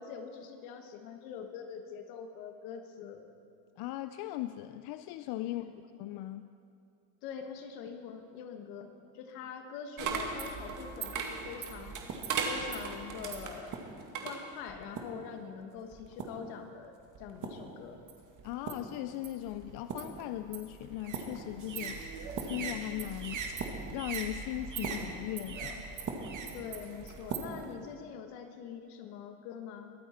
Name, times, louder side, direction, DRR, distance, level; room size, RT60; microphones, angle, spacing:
voice 1, 0.0-3.2 5.4-5.8 7.2-12.0 12.5-13.8 14.2-18.0 26.5-29.9, left 7 dB, 80° left, 6 dB, 1.5 m, -44 dB
voice 2, 3.8-5.6 6.0-6.5 18.4-22.0 22.4-23.6 23.9-25.9, left 15 dB, 65° left, 11 dB, 0.5 m, -38 dB
sound 1, 10.0-15.3 15.9-16.5 17.2-17.7 18.1-27.7, right 5 dB, 45° right, 1.8 m, -39 dB
sound 2, 21.6-28.0, right 3 dB, 80° right, 2.3 m, -52 dB
22.5 x 8.5 x 4.3 m, 2.5 s
supercardioid pair, 85°, 42 cm